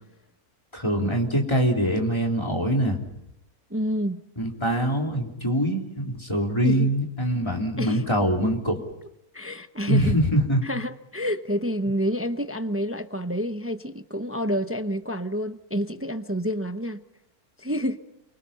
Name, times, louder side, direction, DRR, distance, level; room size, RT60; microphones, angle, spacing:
voice 1, 0.7-3.0 4.4-8.8 9.9-10.6, equal, 15° left, 3.3 m, -23 dB
voice 2, 3.7-4.2 6.6-6.9 7.8-8.0 9.3-10.2 10.6-17.0 17.6-18.0, equal, 15° right, 0.4 m, -28 dB
29.5 x 24.0 x 5.7 m
omnidirectional pair, 1.6 m